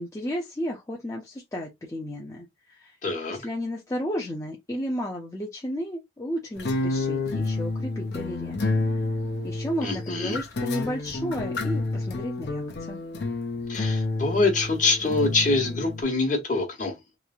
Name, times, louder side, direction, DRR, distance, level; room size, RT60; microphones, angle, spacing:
voice 1, 0.0-3.0 3.3-8.6 9.4-13.0, equal, 15° left, 0.5 m, -33 dB
voice 2, 3.0-3.4 9.8-10.4 13.7-16.9, left 3 dB, 45° left, 1.1 m, -25 dB
sound 1, 6.6-16.0, left 2 dB, 65° left, 0.5 m, -29 dB
3.1 x 2.5 x 2.3 m
head